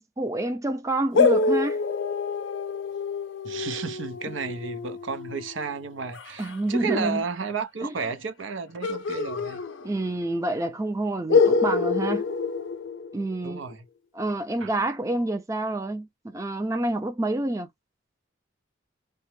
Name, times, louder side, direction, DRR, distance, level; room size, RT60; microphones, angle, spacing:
voice 1, 0.0-1.8 6.4-7.2 7.8-7.9 9.8-12.3 13.1-13.6 14.1-17.7, right 2 dB, 15° right, 0.4 m, -28 dB
sound 1, 1.1-6.6 8.8-10.3 10.5-10.6 11.3-13.5, left 4 dB, 75° left, 0.6 m, -26 dB
voice 2, 3.4-9.6 13.4-13.9 14.6-14.7, right 5 dB, 80° right, 0.6 m, -32 dB
3.4 x 2.0 x 3.1 m
head